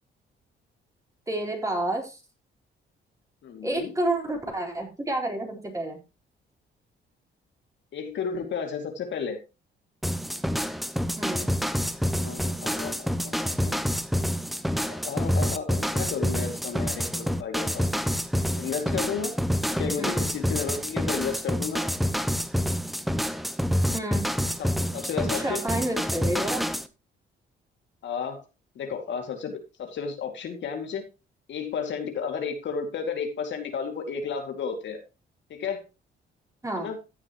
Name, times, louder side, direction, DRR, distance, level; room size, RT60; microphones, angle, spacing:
voice 1, 1.3-2.2 3.6-6.0 11.2-11.5 20.0-20.2 23.9-24.3 25.3-26.7 36.6-36.9, right 1 dB, 15° right, 1 dB, 3.9 m, -29 dB
voice 2, 3.4-3.9 7.9-9.4 12.2-13.8 14.7-18.0 18.5-19.3 19.7-21.8 24.6-25.6 28.0-28.4 28.8-31.0 31.5-35.0 35.5-35.8 36.8-37.0, left 6 dB, 65° left, 5 dB, 2.3 m, -33 dB
sound 1, 10.0-26.9, equal, ahead, 0.8 m, -27 dB
15.0 x 7.4 x 3.0 m, 0.27 s
cardioid pair, 90°, 20 cm